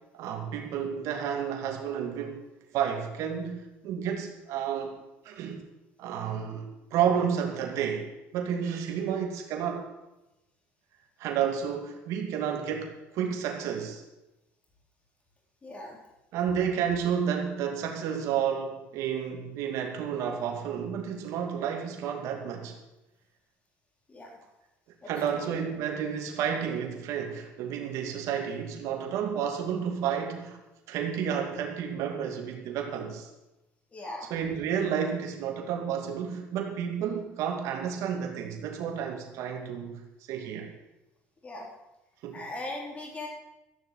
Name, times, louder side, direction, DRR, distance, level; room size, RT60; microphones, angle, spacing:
voice 1, 0.1-2.4 2.7-4.9 5.2-5.6 6.0-9.9 11.2-14.0 16.3-22.8 25.1-30.6 30.9-33.3 34.3-40.0 40.3-40.7 42.2-42.5, right 8 dB, 70° right, 2 dB, 2.5 m, -31 dB
voice 2, 15.6-16.0 24.1-24.3 25.0-25.5 33.9-34.3 41.4-41.7 42.3-43.3, left 2 dB, 25° left, 0 dB, 4.1 m, -39 dB
14.0 x 7.1 x 8.7 m, 0.97 s
cardioid pair, 110°, 5 cm